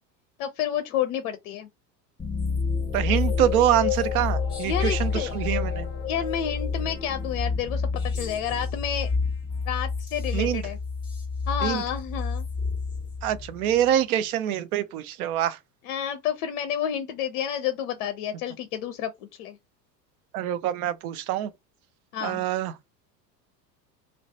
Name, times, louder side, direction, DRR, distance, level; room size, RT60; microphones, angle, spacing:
voice 1, 0.4-1.7 4.7-5.4 6.1-9.1 9.7-10.8 11.5-12.4 15.9-19.1 19.4-19.6 22.1-22.4, left 9 dB, 55° left, 0.5 m, -30 dB
sound 1, 2.2-13.8, left 5 dB, 10° left, 0.8 m, -29 dB
voice 2, 2.9-5.9 10.3-10.6 11.6-11.8 13.2-15.6 20.3-21.5 22.2-22.7, right 11 dB, 60° right, 0.5 m, -25 dB
2.2 x 2.1 x 2.6 m
figure-of-eight pair, 75°, 50 cm